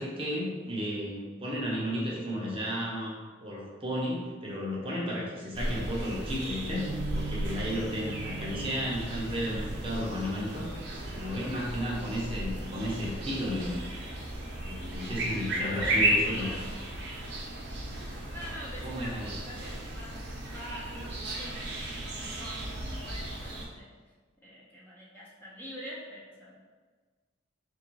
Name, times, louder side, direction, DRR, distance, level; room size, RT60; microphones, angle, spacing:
voice 1, 0.0-3.2 3.4-10.7 11.1-13.8 14.6-16.5 18.8-19.3, equal, 25° right, -4 dB, 0.8 m, -33 dB
sound 1, 5.5-23.6, right 1 dB, 55° right, 0.9 m, -35 dB
sound 2, 6.8-12.8, right 4 dB, 80° right, 0.4 m, -44 dB
voice 2, 15.3-16.7 18.3-23.9 24.4-26.6, equal, 10° left, -7 dB, 0.7 m, -45 dB
3.8 x 2.6 x 4.6 m, 1.4 s
head